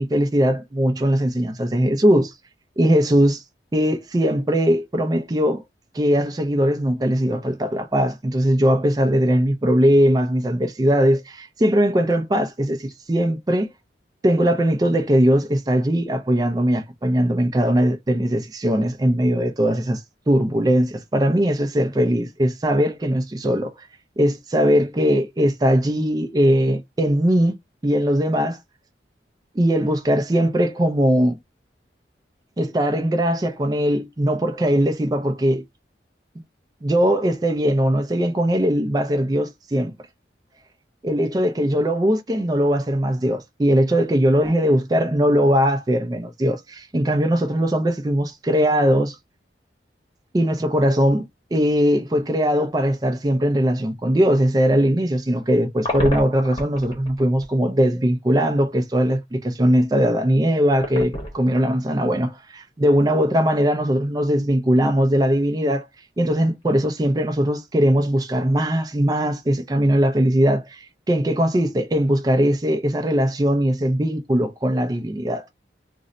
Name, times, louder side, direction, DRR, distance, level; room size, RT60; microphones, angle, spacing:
voice 1, 0.0-2.3 2.8-3.4 3.7-5.6 5.9-13.7 14.2-20.0 20.3-23.7 24.2-27.5 27.8-28.6 29.5-31.4 32.6-35.6 36.8-39.9 41.0-49.2 50.3-65.9 66.2-75.5, equal, 20° right, 0.4 m, -20 dB
sound 1, 55.4-57.5 58.0-58.1 60.7-61.9 62.2-62.3 65.8-66.2 66.6-66.7, left 1 dB, 30° left, 0.9 m, -30 dB
2.5 x 2.1 x 3.7 m
head